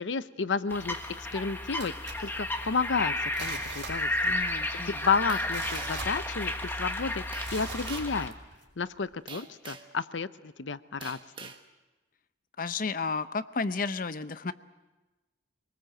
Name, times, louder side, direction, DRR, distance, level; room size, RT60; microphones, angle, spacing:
voice 1, 0.0-1.9 2.2-4.4 4.7-7.2 7.5-8.3 8.8-11.5, left 5 dB, 80° left, 14 dB, 0.7 m, -31 dB
sound 1, 0.7-8.3, left 1 dB, 10° left, 1.5 m, -33 dB
sound 2, 1.8-2.9 3.3-4.5 4.7-4.8 5.3-6.8 7.4-8.6 9.1-9.2, right 4 dB, 75° right, 4.7 m, -42 dB
voice 2, 4.2-5.0 12.6-14.5, left 4 dB, 50° left, 13 dB, 0.7 m, -32 dB
sound 3, 5.3-6.1 7.3-7.6 7.9-8.2 9.3-10.0 11.0-11.6, right 5 dB, 25° right, 1.4 m, -44 dB
25.0 x 19.5 x 7.7 m, 1.1 s
head